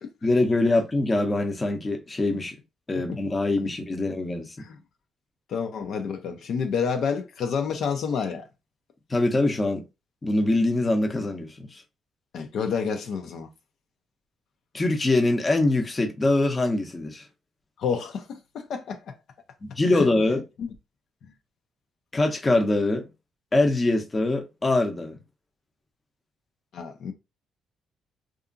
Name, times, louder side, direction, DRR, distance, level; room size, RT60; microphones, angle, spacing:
voice 1, 0.2-2.6 2.9-4.5 9.1-9.8 10.2-11.8 14.7-17.2 19.8-20.4 22.1-23.1 23.5-25.2, left 2 dB, 25° left, 0.7 m, -23 dB
voice 2, 5.5-8.5 12.3-13.5 17.8-19.2 19.9-20.1 20.6-20.7 21.2-21.3 26.7-27.1, left 6 dB, 70° left, 0.5 m, -29 dB
2.7 x 2.4 x 2.5 m
cardioid pair, 90°, 0 cm